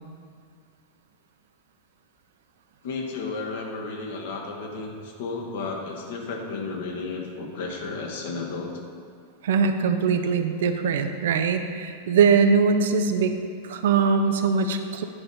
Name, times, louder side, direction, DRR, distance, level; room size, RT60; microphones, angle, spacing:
voice 1, 2.8-8.7, left 3 dB, 55° left, 0 dB, 1.6 m, -33 dB
voice 2, 9.4-13.3 13.6-15.0, right 5 dB, 60° right, 7 dB, 0.6 m, -21 dB
11.0 x 5.3 x 5.7 m, 2.2 s
figure-of-eight pair, 90°, 0 cm